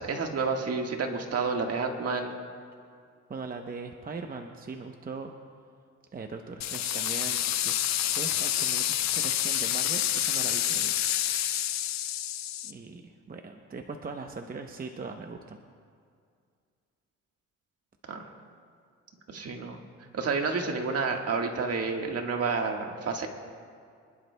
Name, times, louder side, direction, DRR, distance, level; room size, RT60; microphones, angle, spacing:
voice 1, 0.0-2.3 18.1-18.3 19.3-19.8 20.1-23.3, right 4 dB, 55° right, 3 dB, 1.6 m, -30 dB
voice 2, 3.3-5.3 6.1-7.8 8.1-11.0 12.6-15.6, right 4 dB, 30° right, 4 dB, 0.8 m, -40 dB
sound 1, 6.6-12.7, left 12 dB, 60° left, 0.6 m, -28 dB
25.5 x 11.0 x 2.2 m, 2.2 s
cardioid pair, 90°, 30 cm